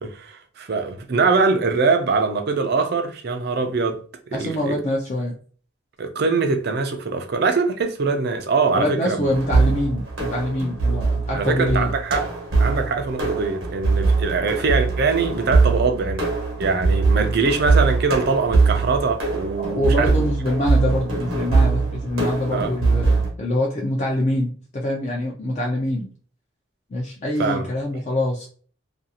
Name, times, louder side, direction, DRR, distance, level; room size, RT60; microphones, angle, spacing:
voice 1, 0.0-4.0 4.3-4.7 6.0-9.3 11.3-12.2 12.6-16.3 16.6-20.3 22.5-22.7 27.4-27.6, right 4 dB, 50° right, 0.4 m, -22 dB
voice 2, 4.3-5.3 8.8-11.9 19.5-26.1 26.9-28.5, left 1 dB, 35° left, 0.4 m, -24 dB
sound 1, 9.2-23.3, right 4 dB, 80° right, 0.9 m, -22 dB
2.5 x 2.3 x 2.8 m
head